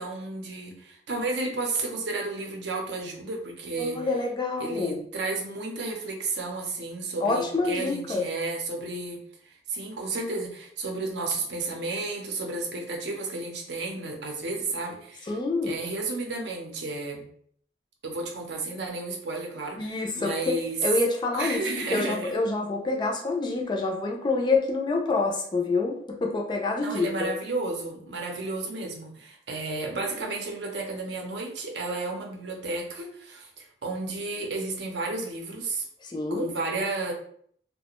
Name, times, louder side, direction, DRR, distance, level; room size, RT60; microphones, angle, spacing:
voice 1, 0.0-4.1 4.6-15.4 15.6-17.3 18.0-20.8 21.3-22.3 26.8-35.8 36.3-37.1, right 3 dB, 75° right, 1 dB, 0.6 m, -32 dB
voice 2, 3.8-5.1 7.2-8.3 15.2-15.8 19.7-21.6 21.9-27.3 36.0-36.5, left 3 dB, 25° left, 1 dB, 0.3 m, -27 dB
2.4 x 2.1 x 2.9 m, 0.62 s
head